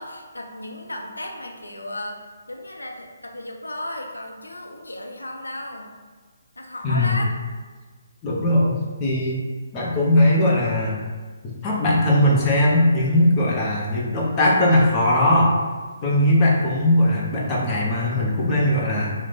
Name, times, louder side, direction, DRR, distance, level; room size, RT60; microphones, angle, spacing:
voice 1, 0.0-2.2 2.5-5.9 6.6-7.4, left 1 dB, 80° left, 1 dB, 0.5 m, -34 dB
voice 2, 6.8-7.2 8.2-9.5 9.7-11.0 11.4-15.5 16.0-19.1, left 1 dB, 20° left, -4 dB, 0.7 m, -19 dB
3.0 x 2.1 x 3.9 m, 1.4 s
figure-of-eight pair, 140°, 0 cm